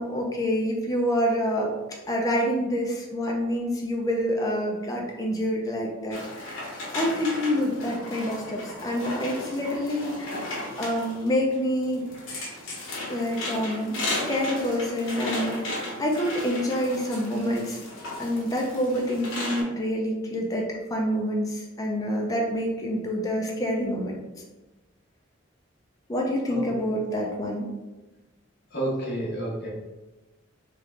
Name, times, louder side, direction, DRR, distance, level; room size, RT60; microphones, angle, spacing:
voice 1, 0.0-1.7 2.1-6.7 6.9-12.0 13.1-17.8 18.2-24.2 26.1-27.7, equal, 20° left, -1 dB, 0.4 m, -27 dB
sound 1, 6.1-19.6, left 2 dB, 80° left, 0.9 m, -35 dB
voice 2, 28.7-29.7, right 1 dB, 55° left, -5 dB, 1.1 m, -30 dB
3.6 x 2.3 x 3.2 m, 1.1 s
head